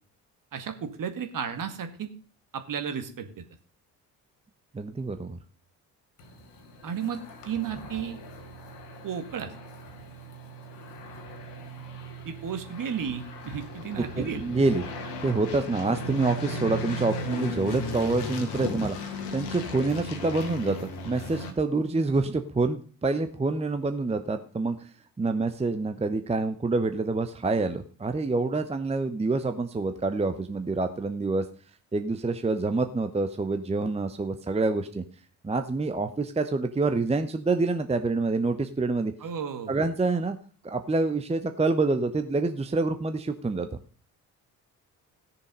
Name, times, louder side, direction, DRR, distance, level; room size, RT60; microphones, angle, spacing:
voice 1, 0.5-2.1 2.5-3.4 6.8-7.2 7.5-8.2 9.0-9.5 12.3-14.5 39.2-39.8, right 7 dB, 40° right, 8 dB, 1.9 m, -33 dB
voice 2, 4.7-5.4 14.2-14.8 15.2-24.9 25.2-31.4 31.9-35.0 35.4-39.1 39.7-40.4 40.6-43.8, right 3 dB, 15° right, 8 dB, 0.9 m, -27 dB
sound 1, 6.2-21.5, left 1 dB, 65° left, 1.9 m, -37 dB
16.5 x 6.8 x 5.3 m, 0.41 s
figure-of-eight pair, 45°, 47 cm